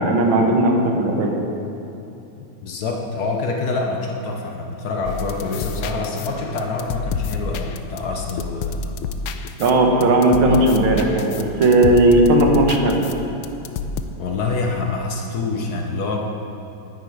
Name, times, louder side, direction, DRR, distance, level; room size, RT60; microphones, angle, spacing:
voice 1, 0.0-1.3 9.6-13.0, right 1 dB, 85° right, 2 dB, 2.0 m, -16 dB
voice 2, 2.4-9.0 10.5-10.7 14.2-16.3, left 3 dB, 60° left, 1 dB, 1.3 m, -26 dB
sound 1, 5.0-14.0, left 4 dB, 90° left, 1.4 m, -29 dB
10.0 x 9.5 x 4.9 m, 2.9 s
omnidirectional pair, 2.2 m